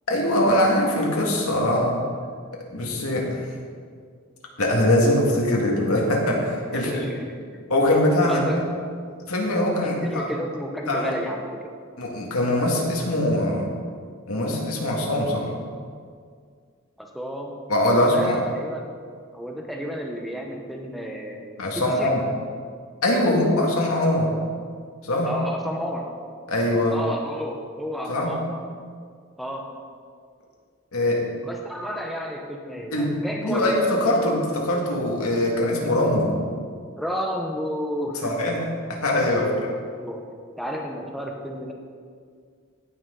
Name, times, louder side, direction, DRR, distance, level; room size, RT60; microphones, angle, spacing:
voice 1, 0.1-2.0 2.7-3.5 4.6-7.1 7.7-8.4 9.2-10.3 10.9-11.1 12.0-13.7 14.3-15.5 17.7-18.4 21.6-22.2 23.0-24.3 25.0-25.3 26.5-27.0 28.1-28.4 30.9-31.2 32.9-36.4 38.2-38.6 38.9-39.5, left 1 dB, 90° left, -1 dB, 2.0 m, -22 dB
voice 2, 6.7-7.6 8.3-8.6 9.8-11.7 17.0-17.6 17.9-18.9 19.3-22.1 25.2-26.2 26.9-28.5 29.4-29.7 31.4-33.8 37.0-38.5 39.4-39.7 40.0-41.7, equal, ahead, 0 dB, 0.7 m, -32 dB
16.5 x 6.2 x 3.8 m, 2.1 s
head